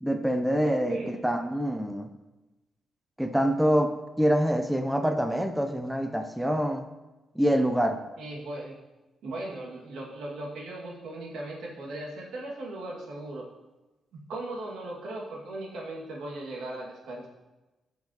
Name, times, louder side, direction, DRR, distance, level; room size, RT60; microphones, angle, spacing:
voice 1, 0.0-2.1 3.2-6.9 7.4-8.0, equal, ahead, 6 dB, 0.5 m, -26 dB
voice 2, 0.6-1.1 8.2-8.8 9.2-13.4 14.3-17.3, right 2 dB, 85° right, -2 dB, 2.1 m, -38 dB
15.5 x 5.8 x 3.0 m, 1.1 s
cardioid pair, 145°, 0 cm